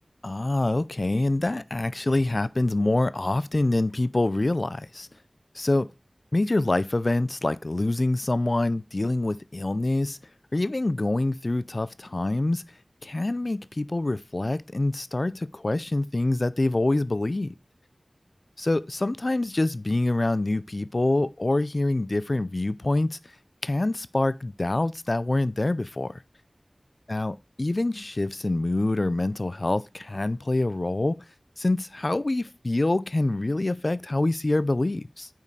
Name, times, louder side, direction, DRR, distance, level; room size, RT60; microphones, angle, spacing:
voice 1, 0.2-5.1 5.6-5.9 6.3-10.2 10.5-12.6 13.0-17.5 18.6-23.2 23.6-26.1 27.1-31.2 31.6-35.3, left 2 dB, 50° left, 0.4 m, -25 dB
5.4 x 4.5 x 4.6 m
wide cardioid pair, 45°, 0 cm